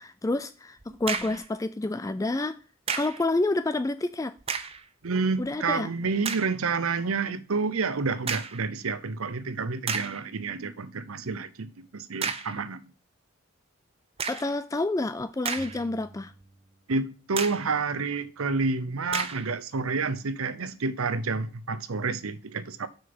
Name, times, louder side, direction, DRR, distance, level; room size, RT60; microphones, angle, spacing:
voice 1, 0.0-2.6 2.9-4.3 5.4-5.9 14.3-16.3, left 2 dB, 15° left, 0.3 m, -29 dB
sound 1, 0.8-1.5 2.9-3.3 4.4-4.9 5.5-5.6 6.2-6.6 8.3-8.7 9.3-9.4 9.9-10.2 12.2-12.6 14.2-14.6 15.2-16.0 16.4-16.5 17.4-17.7 19.1-19.5, right 6 dB, 30° right, 0.7 m, -32 dB
voice 2, 5.0-12.8 16.9-22.9, right 4 dB, 85° right, 0.8 m, -29 dB
sound 2, 15.6-17.1 17.3-19.1, right 1 dB, 10° right, 1.5 m, -53 dB
6.4 x 5.7 x 6.1 m
head